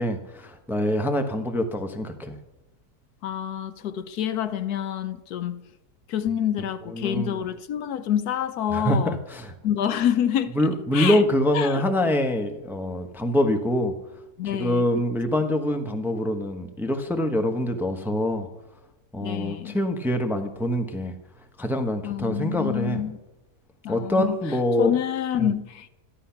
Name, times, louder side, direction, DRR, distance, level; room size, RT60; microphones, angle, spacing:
voice 1, 0.0-2.4 6.9-7.4 8.7-9.5 10.5-13.9 14.4-18.5 19.1-21.2 21.6-23.0 23.9-25.0 25.4-25.5, left 1 dB, ahead, 5 dB, 0.9 m, -25 dB
voice 2, 3.2-5.6 6.1-9.2 9.6-10.5 10.9-11.2 11.5-11.8 14.4-14.8 19.2-19.8 22.0-23.2 23.8-24.4 24.8-25.9, left 10 dB, 70° left, 12 dB, 1.2 m, -27 dB
14.0 x 12.0 x 5.8 m, 1.0 s
omnidirectional pair, 1.8 m